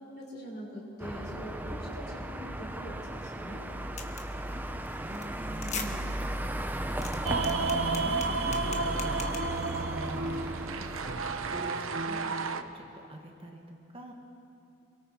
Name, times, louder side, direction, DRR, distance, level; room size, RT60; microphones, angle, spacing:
voice 1, 0.2-3.7 5.3-6.0, equal, 50° left, -2 dB, 5.3 m, -43 dB
sound 1, 1.0-11.7, right 1 dB, 10° right, 0.7 m, -36 dB
voice 2, 1.8-2.2 4.2-6.0 6.4-14.1, right 1 dB, 25° right, 1 dB, 1.7 m, -46 dB
sound 2, 4.0-4.3 4.7-4.9 5.1-5.2 5.5-5.9 6.2-6.3 6.7-9.8, left 6 dB, 35° left, 1.4 m, -40 dB
sound 3, 7.3-12.6, right 3 dB, 75° right, 0.9 m, -32 dB
29.0 x 23.0 x 4.7 m, 2.7 s
head